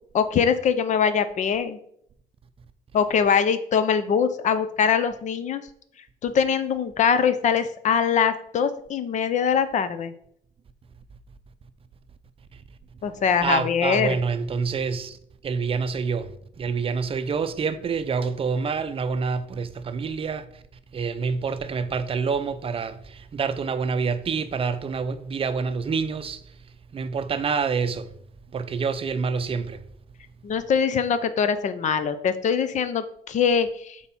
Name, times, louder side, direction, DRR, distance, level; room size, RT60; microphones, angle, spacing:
voice 1, 0.1-1.8 2.9-5.6 6.2-10.1 13.0-14.2 30.4-34.0, left 7 dB, 45° left, 0.6 m, -23 dB
voice 2, 13.4-20.6 20.9-26.6 26.9-28.1 28.5-29.8, right 5 dB, 35° right, 0.6 m, -27 dB
7.0 x 4.7 x 4.2 m
cardioid pair, 110°, 17 cm